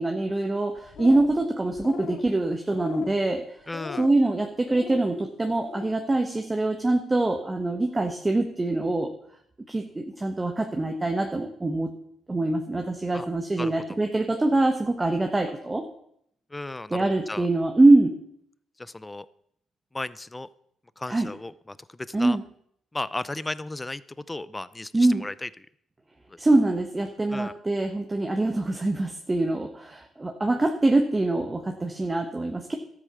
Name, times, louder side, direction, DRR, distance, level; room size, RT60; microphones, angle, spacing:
voice 1, 0.0-3.4 4.0-9.1 9.7-11.9 12.3-15.8 16.9-18.2 21.1-21.3 22.1-22.4 24.9-25.2 26.4-32.8, right 2 dB, 20° right, 4 dB, 1.2 m, -24 dB
sound 1, 0.8-1.4 1.7-2.3 2.7-3.2 3.7-4.2 4.6-5.1 5.5-5.9, left 7 dB, 65° left, 1.0 m, -39 dB
voice 2, 3.7-4.1 13.1-13.3 13.6-13.7 16.5-17.5 18.8-19.3 19.9-20.5 21.0-22.4 22.9-24.0 24.3-25.5 26.3-26.4 27.3-27.5, left 2 dB, 15° left, 17 dB, 0.6 m, -35 dB
12.5 x 8.5 x 6.8 m, 0.71 s
cardioid pair, 90°, 0 cm